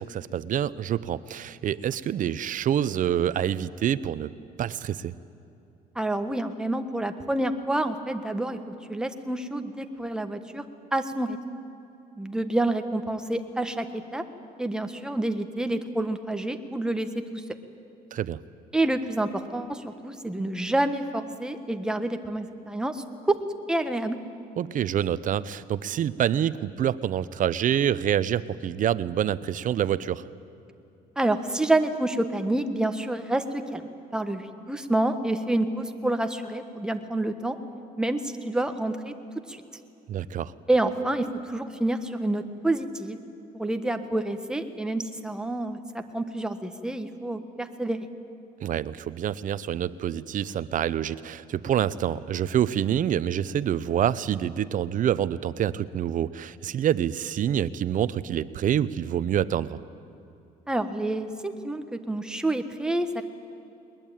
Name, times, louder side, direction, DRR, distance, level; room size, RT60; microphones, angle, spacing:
voice 1, 0.0-4.3 4.6-5.1 18.1-18.4 24.6-30.3 40.1-40.5 48.6-59.8, right 10 dB, 50° right, 16 dB, 0.8 m, -27 dB
voice 2, 5.9-10.6 10.9-11.4 12.2-14.2 14.6-17.4 18.7-23.4 23.7-24.2 31.2-37.6 38.0-39.1 39.5-39.6 40.7-43.2 43.5-48.1 60.7-63.2, right 1 dB, 5° right, 6 dB, 1.4 m, -28 dB
21.0 x 21.0 x 9.2 m, 2.8 s
cardioid pair, 110°, 17 cm